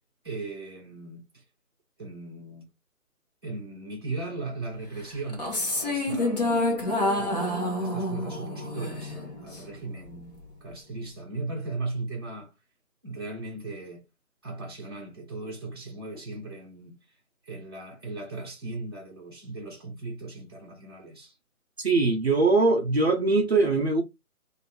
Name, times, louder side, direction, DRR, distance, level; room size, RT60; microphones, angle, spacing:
voice 1, 0.2-1.4 2.0-2.7 3.4-6.6 7.1-12.5 13.0-14.0 14.4-16.9 17.4-21.4, right 3 dB, 15° right, 0.9 m, -37 dB
sound 1, 5.3-9.7, left 1 dB, 30° left, 1.1 m, -28 dB
voice 2, 21.8-24.0, right 3 dB, 45° right, 0.6 m, -22 dB
3.3 x 2.7 x 4.2 m
hypercardioid pair, 170°, 43 cm